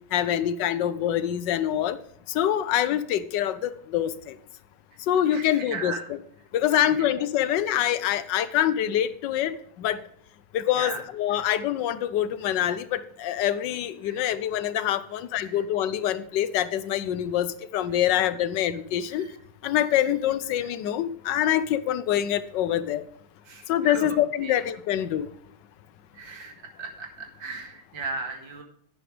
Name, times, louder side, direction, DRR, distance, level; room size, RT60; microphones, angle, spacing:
voice 1, 0.1-2.0 2.3-4.3 5.1-6.2 6.5-10.0 10.5-19.3 19.6-23.0 23.7-25.3, left 11 dB, 70° left, 15 dB, 1.3 m, -25 dB
voice 2, 5.3-6.0 6.7-6.8 10.8-11.0 11.3-11.5 14.0-14.2 15.4-15.5 23.5-24.2 24.4-24.6 26.1-28.6, right 4 dB, 75° right, 3 dB, 2.6 m, -36 dB
11.0 x 9.0 x 3.2 m, 0.68 s
omnidirectional pair, 2.1 m